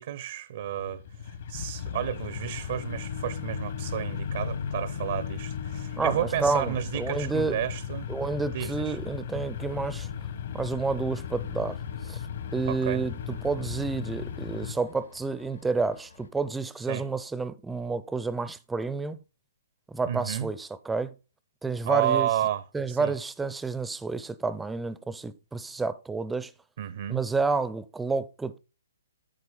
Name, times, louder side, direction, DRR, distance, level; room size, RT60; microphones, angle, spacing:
voice 1, 0.0-8.1 8.5-9.0 12.7-13.0 16.9-17.0 20.1-20.5 21.8-23.1 26.8-27.2, right 11 dB, 50° right, 0.6 m, -31 dB
sound 1, 0.6-14.7, left 7 dB, 55° left, 1.1 m, -36 dB
voice 2, 6.0-7.6 8.1-10.1 10.5-11.8 12.0-12.2 12.5-19.2 19.9-21.1 21.6-22.3 22.7-26.5 27.1-28.6, right 4 dB, 5° right, 0.5 m, -30 dB
sound 2, 11.1-16.3, left 4 dB, 80° left, 2.0 m, -53 dB
8.9 x 8.0 x 3.3 m
figure-of-eight pair, 135°, 0 cm